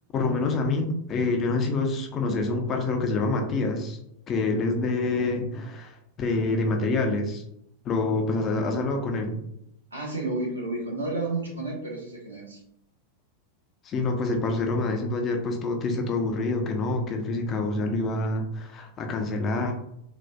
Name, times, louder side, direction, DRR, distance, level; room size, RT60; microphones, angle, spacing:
voice 1, 0.1-4.0 4.3-7.4 7.8-9.4 13.8-19.7, left 3 dB, 30° left, 3 dB, 0.5 m, -26 dB
voice 2, 9.9-12.6, right 2 dB, 75° right, -1 dB, 0.9 m, -31 dB
3.8 x 2.3 x 2.2 m, 0.76 s
figure-of-eight pair, 90°, 0 cm